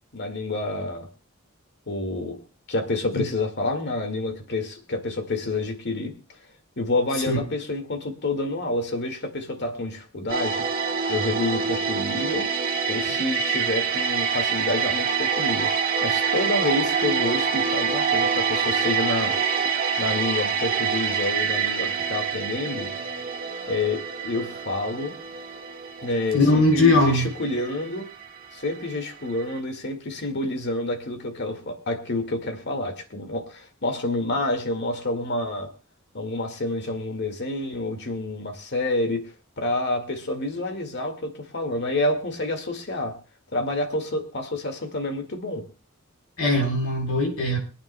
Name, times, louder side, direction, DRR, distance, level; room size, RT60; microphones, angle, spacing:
voice 1, 0.1-1.1 1.9-2.4 2.7-6.1 6.8-10.7 11.1-12.5 12.9-19.4 20.0-22.9 23.7-25.1 26.0-28.1 28.5-35.7 36.1-43.2 43.5-45.6, left 2 dB, 55° left, 6 dB, 2.0 m, -28 dB
sound 1, 10.3-29.1 29.4-29.6, right 6 dB, 45° right, 1.7 m, -26 dB
voice 2, 26.3-27.3 46.4-47.6, left 2 dB, 75° left, 2 dB, 4.1 m, -20 dB
25.5 x 9.0 x 2.2 m, 0.35 s
head